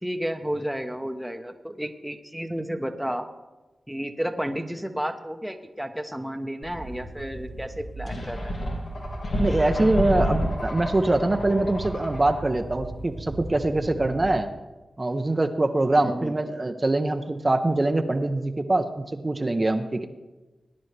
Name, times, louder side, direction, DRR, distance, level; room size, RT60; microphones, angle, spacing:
voice 1, 0.0-3.3 3.9-8.5 16.0-16.3, equal, 5° right, 6 dB, 1.0 m, -32 dB
sound 1, 6.6-14.4, right 2 dB, 70° right, 1.2 m, -38 dB
sound 2, 8.1-12.6, equal, 80° left, 2.4 m, -29 dB
voice 2, 9.4-14.5 15.0-20.0, right 2 dB, 35° right, 5 dB, 0.8 m, -24 dB
18.5 x 10.0 x 3.4 m, 1.1 s
cardioid pair, 45°, 0 cm